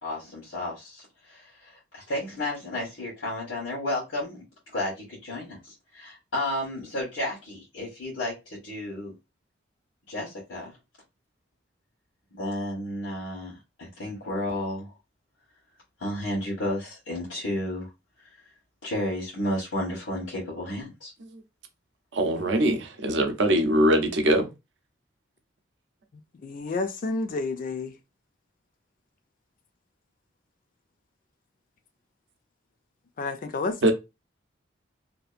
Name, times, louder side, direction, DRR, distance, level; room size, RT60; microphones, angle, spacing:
voice 1, 0.0-4.4 4.7-9.1 10.1-10.7 12.3-14.9 16.0-17.9 18.8-21.1, left 1 dB, 85° left, 1.1 m, -32 dB
voice 2, 22.1-24.5 33.8-33.9, right 1 dB, 70° right, 0.6 m, -22 dB
voice 3, 26.4-27.9 33.2-33.9, left 3 dB, 45° left, 0.4 m, -30 dB
2.7 x 2.4 x 2.4 m
head